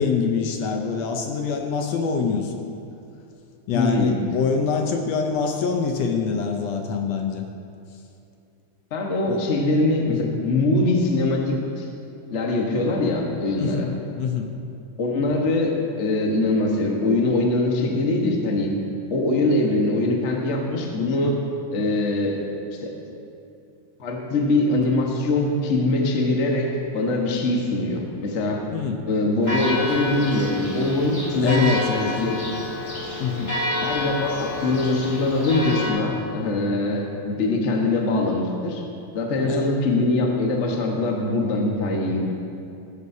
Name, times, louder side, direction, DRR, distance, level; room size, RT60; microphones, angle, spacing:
voice 1, 0.0-2.6 3.7-7.5 9.3-9.5 10.1-10.4 13.6-14.5 28.7-29.0 31.4-32.2 33.2-33.6 39.5-39.8, left 5 dB, 70° left, 3 dB, 1.7 m, -25 dB
voice 2, 3.7-4.1 8.9-11.9 12.3-13.9 15.0-18.7 19.1-21.3 21.7-22.4 22.8-22.9 24.0-28.6 29.1-31.6 32.2-32.4 33.8-38.8 39.1-42.2, left 2 dB, 45° left, 0 dB, 0.9 m, -22 dB
Church bell, 29.4-35.9, left 1 dB, 25° left, 2.7 m, -29 dB
15.5 x 12.5 x 2.8 m, 2.6 s
omnidirectional pair, 3.3 m